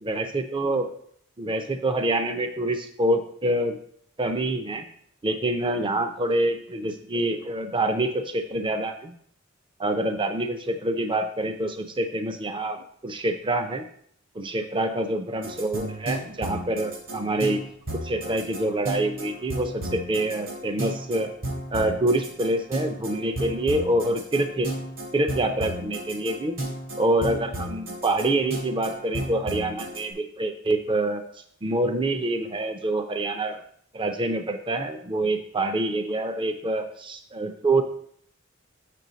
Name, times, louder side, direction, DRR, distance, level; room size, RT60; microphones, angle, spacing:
voice 1, 0.0-0.9 1.4-3.8 4.2-4.9 5.2-9.1 9.8-13.9 14.3-17.6 17.9-21.3 21.7-24.7 25.1-26.6 27.0-33.6 33.9-37.8, right 1 dB, 25° right, 7 dB, 0.5 m, -26 dB
sound 1, 15.4-30.0, right 1 dB, 85° right, 3.7 m, -33 dB
7.6 x 6.3 x 3.9 m, 0.63 s
head